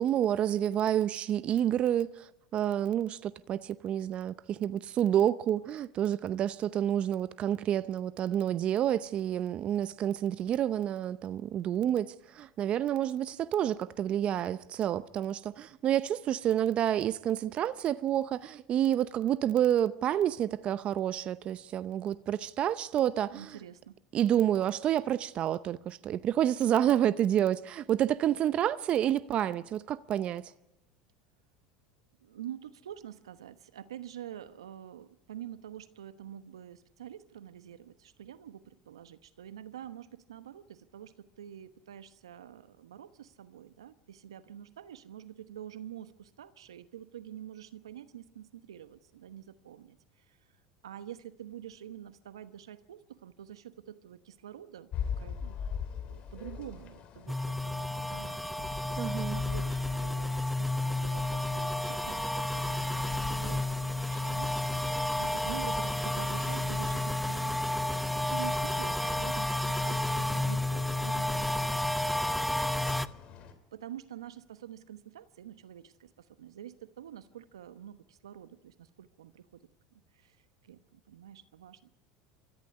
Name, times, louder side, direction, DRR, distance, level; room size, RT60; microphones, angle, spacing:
voice 1, 0.0-23.6 24.1-30.5 59.0-59.4, right 11 dB, 45° right, 0.7 m, -29 dB
voice 2, 23.3-24.0 32.2-50.4 50.8-54.9 55.2-55.6 56.0-63.0 63.3-67.6 68.0-72.9 73.7-79.6 79.9-80.4 80.6-81.8, right 10 dB, 85° right, 1.0 m, -47 dB
sound 1, 54.9-73.5, left 7 dB, 50° left, 3.3 m, -44 dB
sound 2, 57.3-73.1, left 1 dB, ahead, 0.7 m, -31 dB
24.5 x 14.0 x 9.5 m
hypercardioid pair, 85°, 3 cm